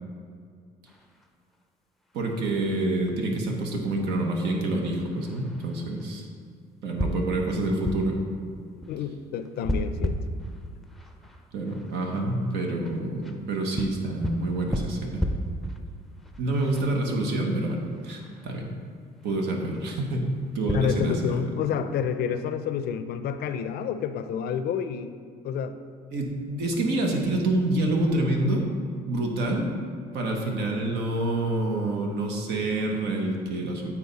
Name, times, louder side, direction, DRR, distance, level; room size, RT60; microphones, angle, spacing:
sound 1, 0.8-20.8, equal, ahead, 0.5 m, -36 dB
voice 1, 2.1-6.3 6.8-8.2 11.5-15.3 16.4-18.7 19.2-21.5 26.1-28.7 29.1-29.7 30.1-33.9, right 2 dB, 80° right, 1 dB, 1.1 m, -27 dB
voice 2, 8.8-10.2 20.7-25.1 25.4-25.8, left 7 dB, 70° left, 10 dB, 0.5 m, -29 dB
8.6 x 4.3 x 4.1 m, 2.2 s
cardioid pair, 110°, 17 cm